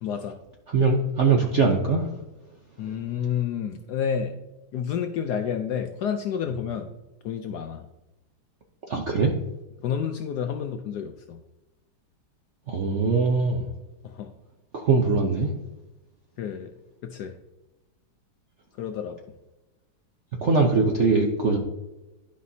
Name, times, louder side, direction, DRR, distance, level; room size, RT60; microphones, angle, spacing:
voice 1, 0.0-0.4 2.8-4.4 4.7-6.9 7.2-7.9 9.8-11.4 14.0-14.3 16.4-16.7 17.0-17.4 18.8-19.2, left 8 dB, 75° left, 6 dB, 0.9 m, -30 dB
voice 2, 0.7-2.1 8.9-9.3 12.7-13.6 14.7-15.5 20.4-21.6, right 4 dB, 65° right, 1 dB, 0.7 m, -21 dB
11.5 x 5.1 x 2.7 m, 1.0 s
omnidirectional pair, 2.2 m